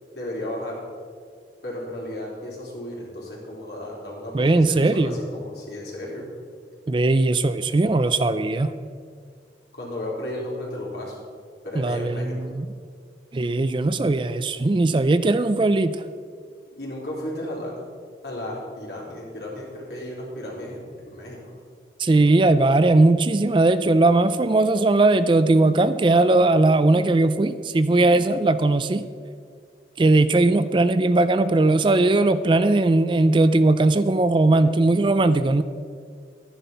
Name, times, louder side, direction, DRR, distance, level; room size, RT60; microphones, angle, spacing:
voice 1, 0.1-0.8 1.6-6.3 9.7-11.2 11.6-12.6 16.7-17.7 18.2-21.6, left 1 dB, 65° left, -4 dB, 3.9 m, -34 dB
voice 2, 4.3-5.2 6.9-8.7 11.7-12.7 13.3-16.0 22.0-29.0 30.0-35.6, right 2 dB, 30° right, 12 dB, 0.4 m, -19 dB
12.0 x 10.0 x 5.6 m, 2.1 s
head